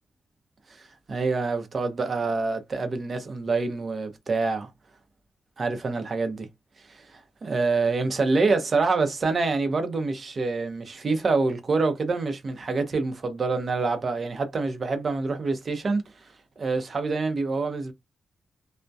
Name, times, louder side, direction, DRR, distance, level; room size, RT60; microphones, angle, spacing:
voice 1, 0.7-4.7 5.6-6.5 6.9-16.0 16.6-17.9, right 3 dB, 45° right, 0.6 m, -26 dB
2.3 x 2.1 x 2.6 m
cardioid pair, 105°, 0 cm